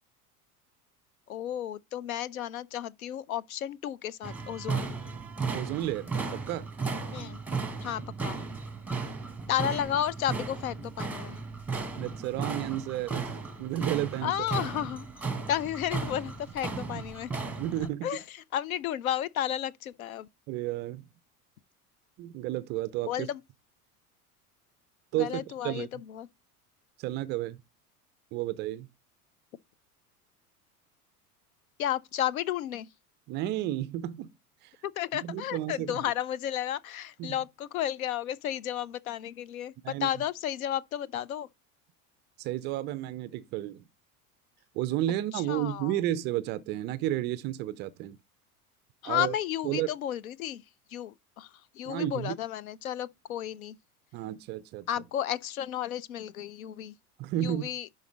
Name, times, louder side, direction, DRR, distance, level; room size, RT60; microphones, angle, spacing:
voice 1, 1.3-4.9 7.1-7.4 7.8-8.4 9.5-11.4 14.2-17.4 18.0-20.3 23.0-23.4 25.2-26.3 31.8-32.9 34.8-41.5 45.3-46.0 49.0-50.6 50.9-53.8 54.9-56.9 57.4-57.9, left 11 dB, 65° left, 0.6 m, -33 dB
sound 1, 4.2-17.9, right 4 dB, 5° right, 1.1 m, -35 dB
voice 2, 5.5-6.7 12.0-14.3 16.9-17.0 17.6-18.1 20.5-21.1 22.2-23.3 25.1-25.9 27.0-27.6 28.3-28.9 33.3-34.3 34.6-34.7 35.2-36.0 37.2-37.4 39.8-40.1 42.4-43.8 44.7-48.2 49.0-49.4 49.6-49.9 51.9-52.4 54.1-54.9 57.2-57.7, right 13 dB, 25° right, 0.3 m, -32 dB
10.5 x 4.0 x 3.7 m
figure-of-eight pair, 75°, 46 cm